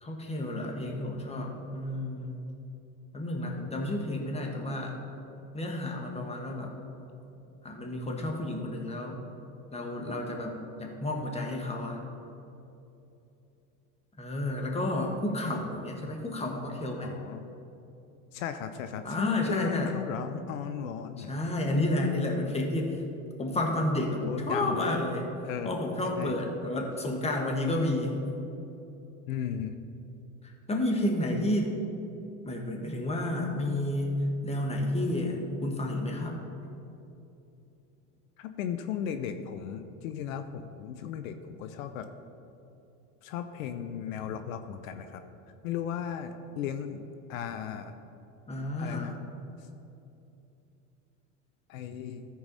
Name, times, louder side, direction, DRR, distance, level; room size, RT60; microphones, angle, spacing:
voice 1, 0.0-2.4 3.1-4.9 5.5-6.7 7.6-9.3 9.7-12.0 14.2-17.1 19.0-19.9 21.3-23.0 23.4-25.3 25.6-28.2 30.7-31.7 32.4-36.4 48.5-49.1, left 1 dB, 15° left, 1 dB, 1.5 m, -31 dB
voice 2, 15.3-15.6 17.0-17.5 18.3-21.3 24.3-25.0 25.4-25.8 26.2-26.3 29.3-29.8 38.4-42.1 43.2-45.2 45.6-47.9 48.8-49.2 51.7-52.3, left 8 dB, 80° left, 9 dB, 0.7 m, -36 dB
14.0 x 4.8 x 4.1 m, 2.8 s
supercardioid pair, 100°, 40 cm